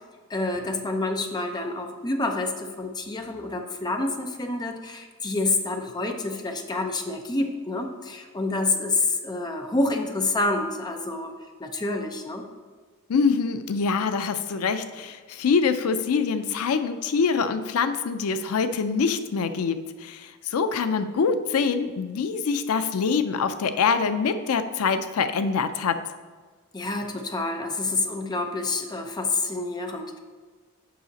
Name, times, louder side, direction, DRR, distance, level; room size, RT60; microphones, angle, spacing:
voice 1, 0.3-11.3 11.6-12.5 26.7-30.2, left 2 dB, 20° left, 4 dB, 0.6 m, -28 dB
voice 2, 13.1-26.0, left 5 dB, 85° left, 10 dB, 0.5 m, -25 dB
7.5 x 5.6 x 4.0 m, 1.5 s
head